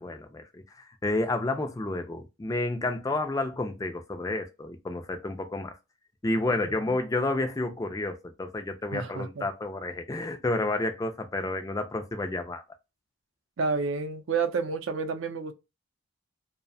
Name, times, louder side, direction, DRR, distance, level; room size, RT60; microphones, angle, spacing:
voice 1, 0.0-5.7 6.2-12.6, left 2 dB, 15° left, 0.3 m, -30 dB
voice 2, 8.9-9.5 13.6-15.5, right 4 dB, 65° right, 0.5 m, -29 dB
2.6 x 2.1 x 2.5 m
head